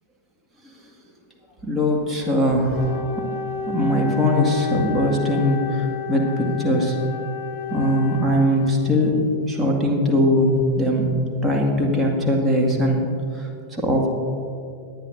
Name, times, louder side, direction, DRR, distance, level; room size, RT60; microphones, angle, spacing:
voice 1, 1.6-3.1 3.7-7.0 7.7-9.2 9.5-11.1 11.4-13.1 13.3-14.1, left 1 dB, 10° right, -1 dB, 1.9 m, -21 dB
Wind instrument woodwind instrument, 2.7-9.1, left 7 dB, 50° left, 1.1 m, -31 dB
19.0 x 10.5 x 2.6 m, 2.4 s
figure-of-eight pair, 90°, 0 cm